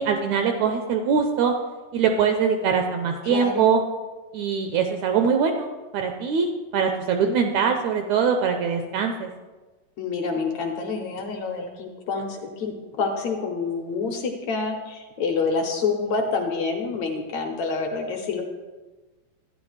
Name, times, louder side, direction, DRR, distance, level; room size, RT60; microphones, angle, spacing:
voice 1, 0.0-1.5 1.9-3.8 4.3-5.7 5.9-9.3, right 6 dB, 80° right, 4 dB, 1.7 m, -22 dB
voice 2, 3.2-3.7 10.0-18.4, left 4 dB, 70° left, 2 dB, 1.8 m, -27 dB
12.0 x 10.0 x 3.2 m, 1.2 s
omnidirectional pair, 3.8 m